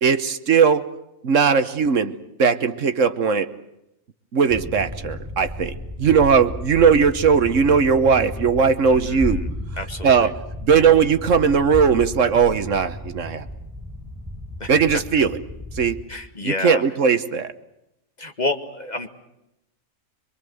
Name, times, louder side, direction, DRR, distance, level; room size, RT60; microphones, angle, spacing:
voice 1, 0.0-0.8 1.2-2.1 2.4-3.5 4.3-9.4 10.0-13.5 14.7-15.4 15.7-16.0 16.4-17.5, right 6 dB, 70° right, 12 dB, 1.5 m, -18 dB
sound 1, 4.5-16.0, left 1 dB, 5° right, 6.2 m, -33 dB
voice 2, 8.9-9.5 9.8-10.3 14.6-14.7 16.1-16.8 18.2-19.1, left 2 dB, 30° left, 6 dB, 2.0 m, -29 dB
25.0 x 24.0 x 7.8 m, 0.86 s
omnidirectional pair, 1.4 m